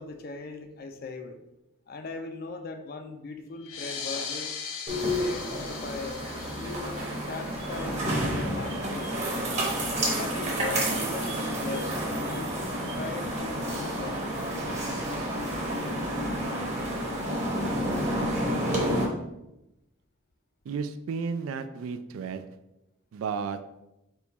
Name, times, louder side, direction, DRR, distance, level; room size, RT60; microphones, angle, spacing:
voice 1, 0.0-1.4 1.9-4.5 5.2-6.3 6.5-9.2 10.1-14.2, left 3 dB, 45° left, 6 dB, 0.4 m, -39 dB
sound 1, 3.6-8.7, left 6 dB, 90° left, 0.6 m, -39 dB
sound 2, 4.9-19.0, equal, 35° right, 0.9 m, -30 dB
sound 3, 7.5-13.8, right 1 dB, 60° right, 1.2 m, -46 dB
voice 2, 20.7-22.4 23.1-23.6, right 5 dB, 80° right, 10 dB, 0.3 m, -33 dB
4.4 x 2.3 x 4.0 m, 0.91 s
head